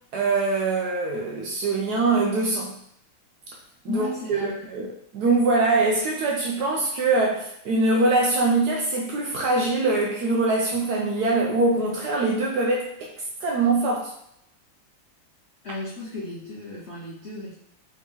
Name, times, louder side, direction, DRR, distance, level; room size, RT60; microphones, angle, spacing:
voice 1, 0.1-2.7 3.8-4.9 5.1-13.1 13.4-14.1, right 3 dB, 65° right, -1 dB, 1.0 m, -23 dB
voice 2, 3.9-4.6 15.6-17.5, left 2 dB, 50° left, -6 dB, 0.8 m, -34 dB
4.3 x 3.0 x 3.5 m, 0.73 s
omnidirectional pair, 2.3 m